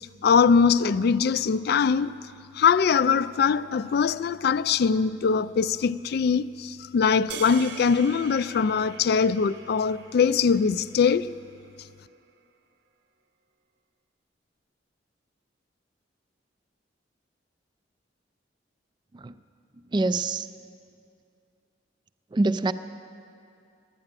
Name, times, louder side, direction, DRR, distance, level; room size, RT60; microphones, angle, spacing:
voice 1, 0.2-2.1 2.5-11.3, left 6 dB, 60° left, 0.3 m, -22 dB
sound 1, 7.3-11.7, right 6 dB, 65° right, 0.8 m, -43 dB
voice 2, 19.9-20.5 22.3-22.7, right 2 dB, 25° right, 0.3 m, -25 dB
12.5 x 9.8 x 8.9 m
head